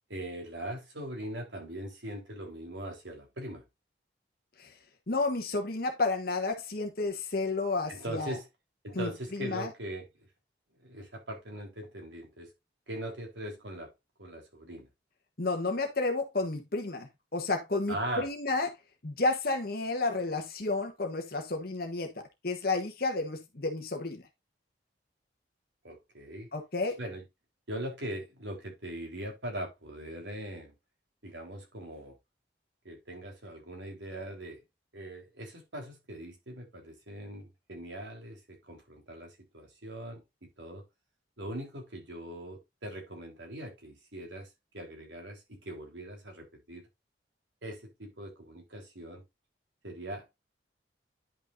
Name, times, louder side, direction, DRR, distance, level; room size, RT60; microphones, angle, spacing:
voice 1, 0.1-3.6 7.9-8.5 8.8-10.3 10.8-12.5 12.9-13.9 14.2-14.9 17.9-18.3 25.8-26.5 27.0-27.2 27.7-30.7 31.2-32.2 32.8-34.6 34.9-40.8 41.4-46.9 47.6-49.2 49.8-50.5, right 1 dB, 80° right, 3.9 m, -41 dB
voice 2, 5.1-8.4 8.9-9.7 15.4-18.7 19.0-24.2 26.5-27.0, left 3 dB, 55° left, 1.3 m, -31 dB
10.5 x 6.2 x 2.6 m
head